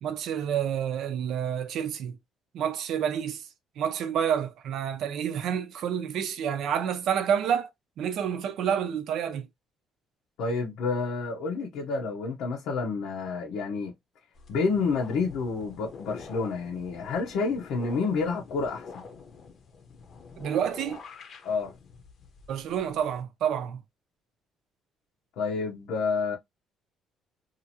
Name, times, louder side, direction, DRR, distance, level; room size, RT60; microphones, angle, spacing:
voice 1, 0.0-2.2 2.5-3.5 3.8-7.7 8.0-9.5 20.4-21.0 22.5-23.8, right 8 dB, 60° right, 0.5 m, -29 dB
voice 2, 10.4-13.9 14.5-19.0 21.4-21.7 25.4-26.4, left 4 dB, 80° left, 0.7 m, -29 dB
sound 1, 14.3-23.2, left 5 dB, 40° left, 0.7 m, -47 dB
2.8 x 2.5 x 2.7 m
cardioid pair, 155°, 0 cm